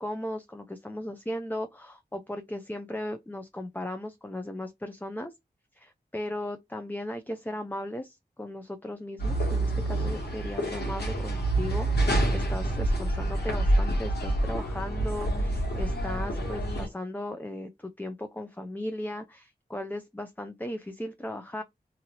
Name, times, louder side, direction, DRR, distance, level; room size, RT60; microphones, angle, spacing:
voice 1, 0.0-5.3 5.7-21.6, left 1 dB, 10° left, 0.4 m, -37 dB
sound 1, 9.2-16.9, right 1 dB, 85° left, 1.3 m, -27 dB
2.7 x 2.6 x 2.8 m
cardioid pair, 45°, 17 cm